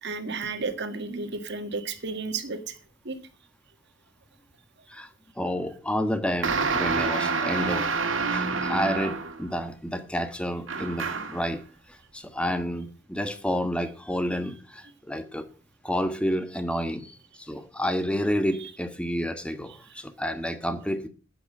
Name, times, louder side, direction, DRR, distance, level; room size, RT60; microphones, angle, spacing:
voice 1, 0.0-2.8 3.1-3.2 18.6-18.7, right 4 dB, 60° right, 1.8 m, -32 dB
voice 2, 5.4-11.6 11.9-15.5 15.8-21.1, equal, 5° left, 1.3 m, -30 dB
sound 1, 6.4-9.5 10.7-11.5, right 4 dB, 80° right, 2.0 m, -27 dB
9.8 x 9.2 x 7.4 m
head